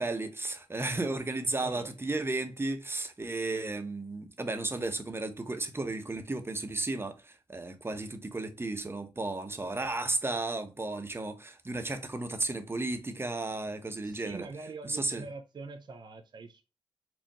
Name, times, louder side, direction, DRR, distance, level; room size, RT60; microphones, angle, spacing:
voice 1, 0.0-14.5 14.9-15.2, right 2 dB, 25° right, 1.0 m, -34 dB
voice 2, 1.6-1.9 14.0-16.6, right 4 dB, 45° right, 0.6 m, -44 dB
4.4 x 2.5 x 2.9 m
cardioid pair, 55°, 10 cm